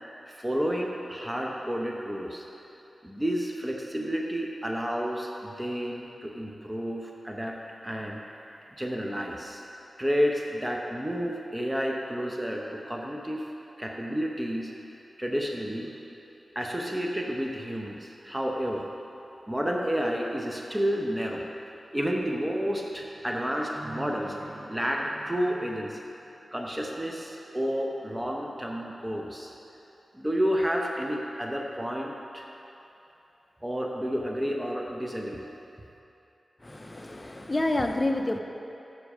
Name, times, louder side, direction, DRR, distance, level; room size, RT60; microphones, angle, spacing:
voice 1, 0.3-2.4 3.0-8.2 8.8-9.6 10.0-13.5 13.8-14.7 15.2-15.9 16.5-18.9 19.5-21.4 21.9-26.0 26.5-29.5 30.1-32.5 33.6-35.5, equal, 15° right, 0 dB, 0.8 m, -30 dB
voice 2, 36.6-38.4, left 1 dB, 25° left, 5 dB, 0.6 m, -28 dB
8.7 x 6.1 x 4.9 m, 2.9 s
cardioid pair, 60°, 0 cm